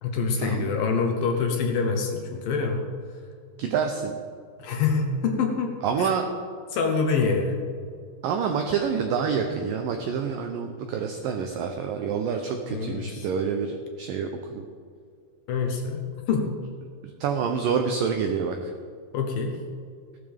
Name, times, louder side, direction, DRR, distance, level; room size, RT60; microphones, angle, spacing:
voice 1, 0.0-2.8 4.6-5.7 6.0-6.2 6.7-7.6 12.7-13.3 15.5-16.5 19.1-19.6, left 5 dB, 70° left, 2 dB, 2.4 m, -26 dB
voice 2, 3.6-4.2 5.8-6.3 8.2-14.6 17.2-18.7, right 6 dB, 85° right, 4 dB, 1.9 m, -27 dB
16.0 x 12.5 x 3.5 m, 2.2 s
omnidirectional pair, 4.9 m